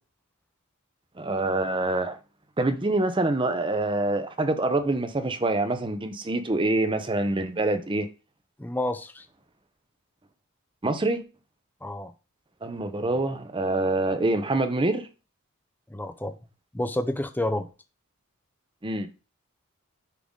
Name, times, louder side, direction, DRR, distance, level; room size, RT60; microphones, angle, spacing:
voice 1, 1.2-2.2 2.6-8.1 10.8-11.2 12.6-15.1 18.8-19.1, right 2 dB, 25° right, 0.7 m, -25 dB
voice 2, 8.6-9.2 11.8-12.1 15.9-16.3 16.7-17.7, left 1 dB, 10° left, 0.5 m, -29 dB
10.0 x 3.8 x 3.7 m
head